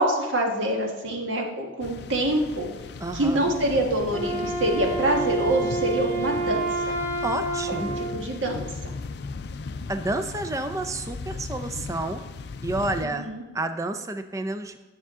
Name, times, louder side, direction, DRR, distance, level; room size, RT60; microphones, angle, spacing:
voice 1, 0.0-2.7 3.1-7.0 7.8-8.9 13.2-13.4, right 1 dB, 80° right, 2 dB, 1.5 m, -26 dB
sound 1, 1.8-13.1, left 4 dB, 60° left, 0.4 m, -37 dB
voice 2, 3.0-3.5 7.2-8.1 9.9-12.2 12.6-14.8, right 2 dB, 15° right, 8 dB, 0.4 m, -30 dB
Wind instrument woodwind instrument, 4.0-8.2, right 2 dB, 50° right, 1.4 m, -28 dB
9.8 x 6.7 x 3.6 m, 1.2 s
head